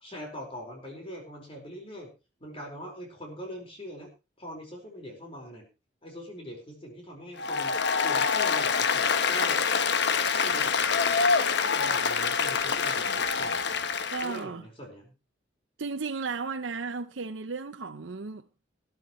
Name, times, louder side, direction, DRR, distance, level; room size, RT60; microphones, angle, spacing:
voice 1, 0.0-2.1 2.4-4.1 4.4-5.7 6.0-7.8 8.0-9.6 10.3-10.7 11.3-13.6 14.2-15.1, equal, 30° left, 4.8 m, -42 dB
Applause, 7.4-14.4, left 5 dB, 65° left, 1.1 m, -26 dB
voice 2, 14.1-14.7 15.8-18.5, right 4 dB, 80° right, 0.7 m, -34 dB
20.5 x 11.5 x 3.2 m
head